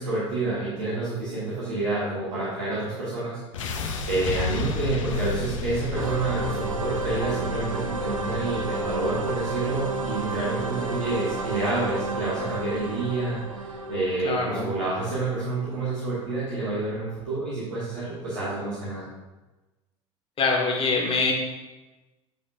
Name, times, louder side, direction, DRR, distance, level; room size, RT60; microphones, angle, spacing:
voice 1, 0.0-3.4 3.7-19.0, right 2 dB, 75° right, -10 dB, 1.8 m, -28 dB
sound 1, 3.5-15.6, left 4 dB, 75° left, 0.6 m, -35 dB
sound 2, 5.9-16.6, right 3 dB, 90° right, 0.4 m, -32 dB
voice 2, 14.2-14.7 20.4-21.3, left 4 dB, 35° left, 0 dB, 1.5 m, -24 dB
8.8 x 5.1 x 2.4 m, 1.1 s
figure-of-eight pair, 65°, 17 cm